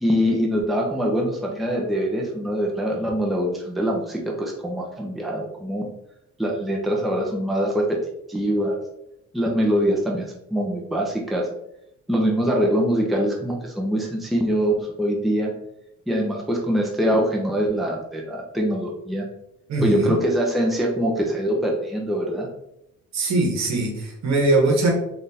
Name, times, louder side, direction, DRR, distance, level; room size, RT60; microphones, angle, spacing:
voice 1, 0.0-5.9 6.4-8.0 8.3-8.8 9.3-11.5 12.1-15.5 16.1-19.3 19.8-22.5, equal, ahead, -1 dB, 0.6 m, -23 dB
voice 2, 19.7-20.2 23.1-24.9, right 2 dB, 65° right, 0 dB, 1.1 m, -21 dB
3.5 x 2.5 x 2.8 m, 0.80 s
cardioid pair, 90°, 30 cm